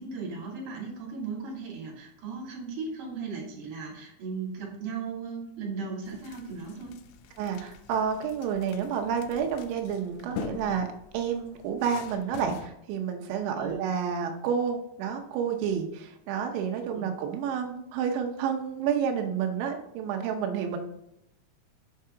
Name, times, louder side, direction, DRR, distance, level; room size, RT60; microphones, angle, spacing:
voice 1, 0.0-6.9 13.5-13.8 16.9-17.1, right 4 dB, 50° right, -3 dB, 3.7 m, -37 dB
sound 1, 6.1-12.7, left 8 dB, 85° left, 2.7 m, -44 dB
voice 2, 7.4-10.9 11.1-20.8, right 7 dB, 90° right, 3 dB, 3.2 m, -30 dB
7.9 x 5.6 x 3.7 m, 0.78 s
omnidirectional pair, 5.1 m